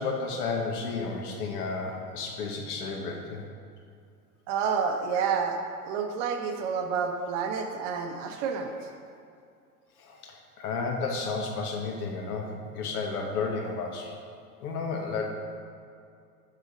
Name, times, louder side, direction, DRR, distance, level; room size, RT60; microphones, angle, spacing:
voice 1, 0.0-3.4 10.0-14.1 14.6-15.3, left 4 dB, 65° left, 1 dB, 1.4 m, -32 dB
voice 2, 4.5-8.7, right 6 dB, 45° right, 4 dB, 1.0 m, -29 dB
6.6 x 4.9 x 5.2 m, 2.4 s
hypercardioid pair, 95°, 48 cm